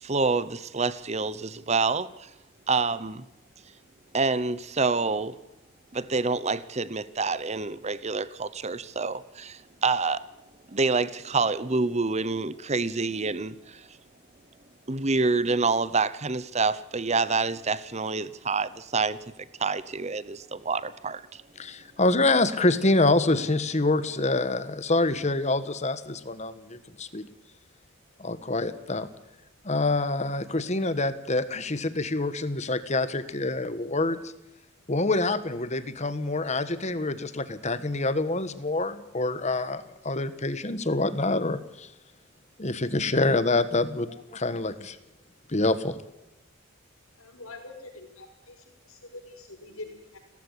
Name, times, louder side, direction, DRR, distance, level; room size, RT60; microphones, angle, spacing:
voice 1, 0.0-2.1 2.7-3.2 4.1-5.4 5.9-10.2 10.7-13.9 14.9-19.2 19.6-21.4, right 4 dB, 30° right, 0.9 m, -27 dB
voice 2, 21.6-27.2 28.2-29.1 29.6-34.3 34.9-41.9 42.6-45.0 45.5-46.0, left 2 dB, 35° left, 1.4 m, -26 dB
voice 3, 47.2-50.2, left 2 dB, 80° left, 5.7 m, -45 dB
17.5 x 15.0 x 9.9 m
head